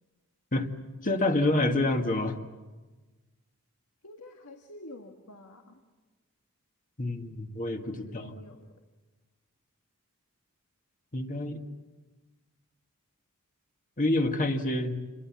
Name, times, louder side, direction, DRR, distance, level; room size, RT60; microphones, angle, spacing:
voice 1, 1.0-2.4 7.0-8.3 11.1-11.6 14.0-15.0, left 2 dB, 40° left, 5 dB, 1.9 m, -27 dB
voice 2, 4.0-5.8 7.9-8.8, left 1 dB, 85° left, 3 dB, 1.9 m, -48 dB
28.0 x 22.5 x 7.4 m, 1.2 s
head